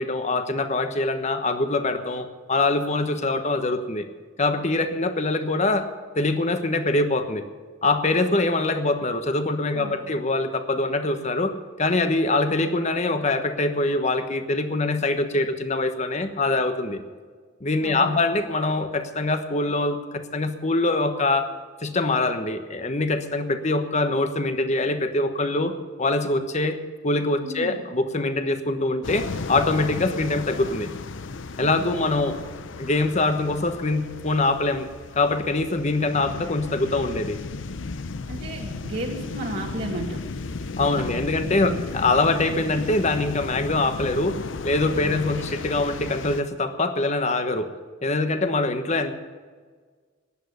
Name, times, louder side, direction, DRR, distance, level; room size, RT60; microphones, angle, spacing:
voice 1, 0.0-4.1 4.4-5.9 6.1-7.4 7.8-17.0 17.6-21.5 21.8-25.7 26.0-26.8 27.0-30.9 31.6-32.4 32.8-34.9 35.1-37.4 40.8-44.4 44.6-47.7 48.0-49.1, left 2 dB, 35° left, 8 dB, 1.2 m, -24 dB
voice 2, 9.7-10.1 17.8-18.2 27.4-27.9 31.6-32.4 38.3-40.2 40.9-41.2 41.6-41.8 45.0-45.5, right 1 dB, 55° right, -2 dB, 2.0 m, -34 dB
sound 1, 29.0-46.4, left 3 dB, 75° left, 0.7 m, -35 dB
15.0 x 10.5 x 8.2 m, 1.5 s
head